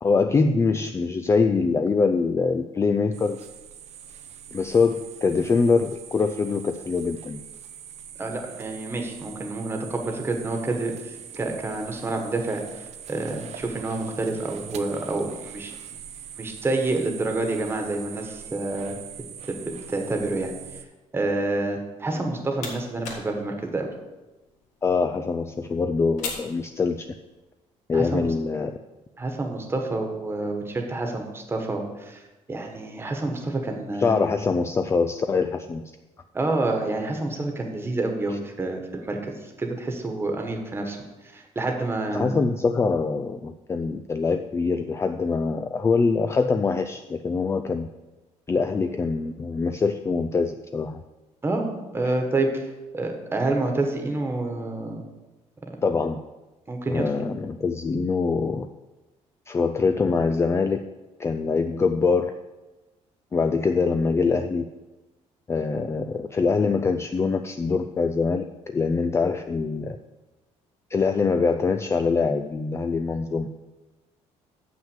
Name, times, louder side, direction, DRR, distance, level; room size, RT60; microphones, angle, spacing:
voice 1, 0.0-3.4 4.5-7.4 22.1-22.3 24.8-27.1 27.9-28.7 34.0-35.8 42.1-47.9 48.5-51.0 55.8-56.2 56.9-58.7 59.5-60.8 61.2-62.3 63.3-64.7 65.5-68.4 68.7-70.0 70.9-73.5, left 4 dB, 20° left, 7 dB, 0.4 m, -24 dB
sound 1, 3.1-20.8, right 9 dB, 65° right, 0.8 m, -42 dB
voice 2, 8.2-12.6 13.1-15.7 16.4-19.0 19.4-20.5 21.1-23.9 27.9-28.3 29.2-32.2 32.5-34.2 36.3-41.0 41.3-42.4 51.4-51.7 51.9-52.7 52.9-55.0 56.7-57.3, right 2 dB, 20° right, 3 dB, 1.4 m, -28 dB
sound 2, 22.1-27.4, left 4 dB, 90° left, 2.0 m, -41 dB
7.3 x 6.0 x 7.2 m, 1.1 s
cardioid pair, 115°, 12 cm